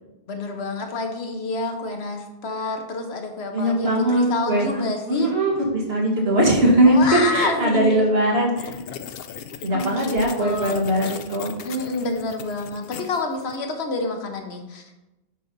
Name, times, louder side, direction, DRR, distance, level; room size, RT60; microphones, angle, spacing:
voice 1, 0.3-5.3 6.9-8.0 9.7-10.8 11.6-15.0, left 2 dB, 85° left, 4 dB, 1.2 m, -28 dB
voice 2, 3.5-8.8 9.6-11.5, right 1 dB, 70° right, -2 dB, 1.9 m, -20 dB
sound 1, 8.6-13.6, left 8 dB, 70° left, 0.7 m, -38 dB
7.4 x 3.9 x 5.3 m, 1.0 s
omnidirectional pair, 1.1 m